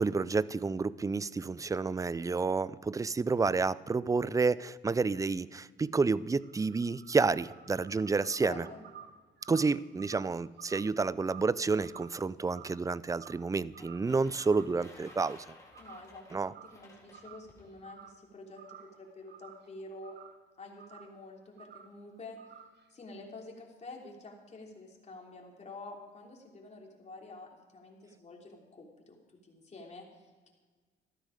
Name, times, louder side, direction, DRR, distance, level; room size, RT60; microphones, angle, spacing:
voice 1, 0.0-8.7 9.5-15.5 16.3-16.5, right 4 dB, 15° right, 19 dB, 0.4 m, -30 dB
sound 1, 6.1-13.5 13.7-14.1 14.4-15.5 15.7-16.1 16.4-16.9 17.1-18.2 18.5-20.4 20.8-21.2 21.6-22.0 22.4-22.9, right 8 dB, 60° right, 1.1 m, -53 dB
voice 2, 8.4-8.8 15.8-16.4 16.7-20.2 20.6-22.4 22.9-29.2 29.4-30.5, left 2 dB, 35° left, 0 dB, 3.3 m, -48 dB
sound 2, 13.6-17.7, left 2 dB, 15° left, 3.6 m, -56 dB
14.0 x 13.0 x 5.0 m, 1.4 s
cardioid pair, 90°, 20 cm